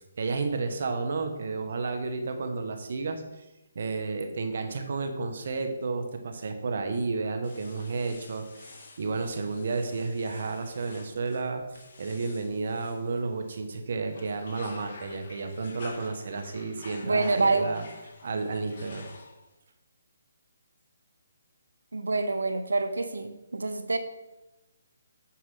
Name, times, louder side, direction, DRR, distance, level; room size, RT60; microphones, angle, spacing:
voice 1, 0.2-3.4 3.7-17.8 18.2-19.1, right 4 dB, 60° right, 6 dB, 1.3 m, -32 dB
sound 1, 7.4-13.6 14.0-19.6, left 3 dB, 50° left, 2.0 m, -49 dB
voice 2, 17.0-17.7 21.9-24.0, right 3 dB, 85° right, 10 dB, 0.9 m, -26 dB
8.7 x 4.9 x 5.6 m, 0.99 s
hypercardioid pair, 150°, 0 cm